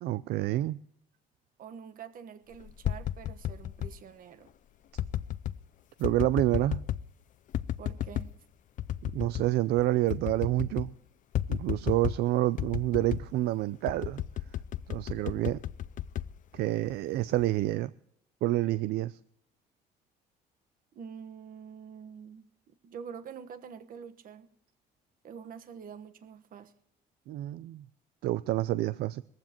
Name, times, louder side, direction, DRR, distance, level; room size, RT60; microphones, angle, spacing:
voice 1, 0.0-0.8 6.0-6.8 9.1-10.9 11.5-14.2 14.9-15.6 16.5-17.9 18.4-19.2 27.3-27.8 28.2-29.2, right 15 dB, 75° right, 0.5 m, -28 dB
voice 2, 1.6-4.5 7.8-8.3 20.9-24.5 25.2-26.7, right 7 dB, 55° right, 1.3 m, -46 dB
sound 1, 2.6-4.0 5.0-5.6 6.0-7.1 7.5-8.3 8.8-9.5 9.8-9.9 10.1-10.9 11.3-12.3 12.6-13.3 13.9-17.0 17.4-17.8, left 11 dB, 50° left, 0.5 m, -33 dB
20.0 x 15.0 x 3.0 m
cardioid pair, 110°, 17 cm